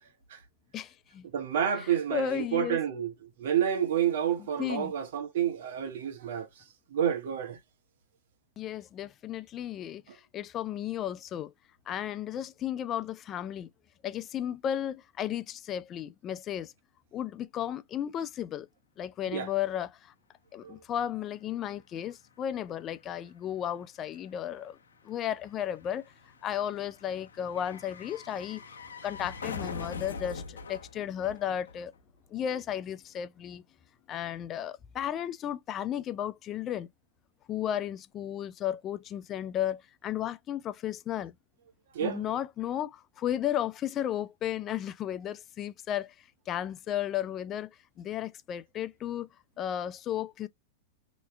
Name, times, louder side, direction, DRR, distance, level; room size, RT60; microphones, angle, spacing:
voice 1, 0.7-1.3 1.8-2.8 4.6-4.9 8.6-11.5 11.9-13.7 14.0-16.7 17.1-18.7 19.0-20.1 20.5-24.8 25.0-26.0 26.4-28.6 29.0-31.9 32.3-33.6 34.1-36.9 37.5-41.3 42.0-47.7 48.0-49.3 49.6-50.5, left 10 dB, 30° left, 0.4 m, -34 dB
voice 2, 1.2-6.5 6.9-7.6 19.3-19.5 20.6-20.7 41.9-42.2, right 9 dB, 70° right, 1.2 m, -29 dB
sound 1, 21.5-21.6 21.8-32.2 32.4-32.5, left 5 dB, 90° left, 0.9 m, -44 dB
3.2 x 3.1 x 3.2 m
hypercardioid pair, 115°, 0 cm